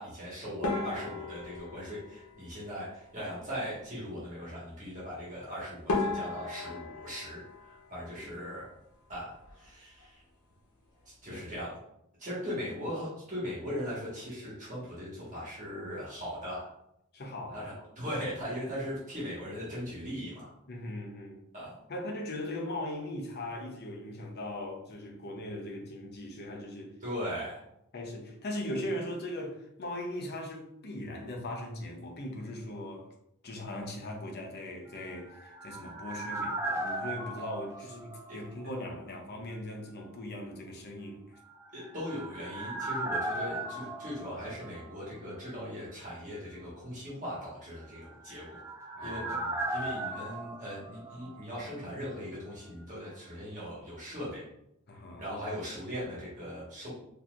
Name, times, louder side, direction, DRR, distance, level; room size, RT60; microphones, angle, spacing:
voice 1, 0.0-8.7 9.1-10.2 11.2-11.8 12.2-16.7 17.5-20.5 21.5-21.7 27.0-27.6 41.7-48.6 49.0-49.4 49.7-54.5 55.2-56.9, equal, 35° right, -7 dB, 1.3 m, -39 dB
sound 1, 0.6-3.1 5.3-5.4 5.9-8.6 8.9-9.7 10.0-10.2 10.5-10.6 11.2-11.5, left 3 dB, 85° left, 0.9 m, -36 dB
voice 2, 8.2-8.5 11.3-11.4 17.1-17.7 20.7-21.4 21.9-26.9 27.9-33.1 33.4-41.4 48.9-49.9 54.9-55.2, left 1 dB, 45° left, 1 dB, 0.7 m, -39 dB
sound 2, 35.0-38.9 39.1-39.2 41.6-45.3 45.6-45.7 48.0-51.8 52.1-52.2, right 2 dB, 10° right, 0.5 m, -37 dB
4.0 x 2.8 x 2.4 m, 0.79 s
head